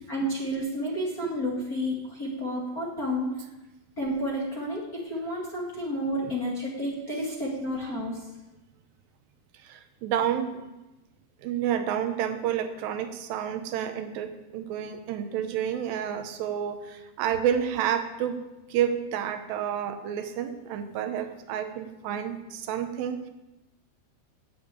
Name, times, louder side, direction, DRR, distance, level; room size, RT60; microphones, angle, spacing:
voice 1, 0.1-3.3 4.0-8.2, equal, 30° left, -4 dB, 1.9 m, -31 dB
voice 2, 9.6-10.6 11.4-18.4 18.7-23.3, right 9 dB, 85° right, 8 dB, 3.2 m, -30 dB
9.5 x 9.3 x 8.7 m, 1.0 s
omnidirectional pair, 4.7 m